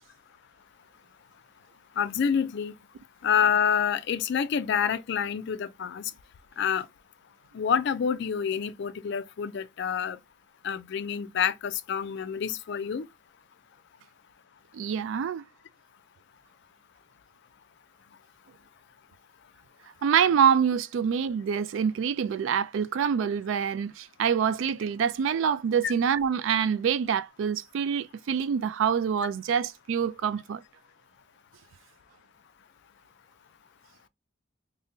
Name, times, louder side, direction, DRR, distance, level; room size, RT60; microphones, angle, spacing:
voice 1, 2.0-2.7 3.2-6.1 6.6-6.9 7.5-10.2 10.6-13.1 25.8-25.9, left 7 dB, 60° left, 0.4 m, -27 dB
voice 2, 14.7-15.4 20.0-30.6, right 7 dB, 70° right, 0.3 m, -26 dB
5.1 x 2.1 x 2.6 m
head